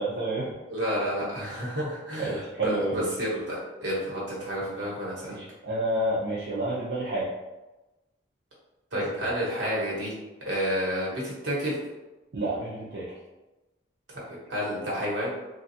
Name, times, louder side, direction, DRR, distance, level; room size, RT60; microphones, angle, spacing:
voice 1, 0.0-0.5 2.2-3.1 5.2-7.3 8.9-9.0 12.3-13.1, right 1 dB, 70° right, -8 dB, 0.6 m, -29 dB
voice 2, 0.7-5.4 8.9-10.1 10.4-11.8 14.1-15.3, equal, 90° right, -6 dB, 1.2 m, -30 dB
3.1 x 2.3 x 2.7 m, 1.1 s
head